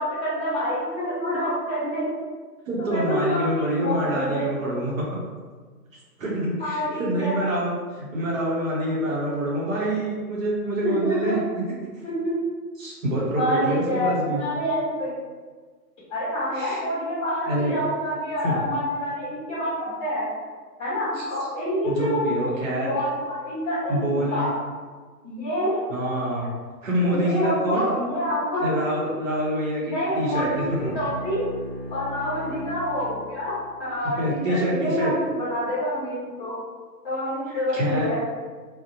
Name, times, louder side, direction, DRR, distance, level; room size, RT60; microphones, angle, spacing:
voice 1, 0.0-2.1 2.8-4.5 6.6-7.3 10.8-11.3 12.0-12.3 13.3-15.1 16.1-20.2 20.8-22.4 22.8-24.5 25.2-25.8 27.0-28.7 29.8-31.4 31.9-36.5 37.0-38.2, equal, 10° left, -12 dB, 1.1 m, -27 dB
voice 2, 2.7-5.0 6.2-11.4 12.8-14.4 16.5-16.8 17.5-17.8 18.4-18.6 21.1-21.3 21.8-22.9 23.9-24.5 25.9-26.5 26.8-27.8 28.6-30.9 34.2-35.1 37.5-38.1, right 1 dB, 55° right, -5 dB, 0.7 m, -26 dB
Bowed string instrument, 29.9-33.9, equal, 30° left, 0.4 m, -38 dB
2.6 x 2.0 x 2.6 m, 1.5 s
hypercardioid pair, 150°, 49 cm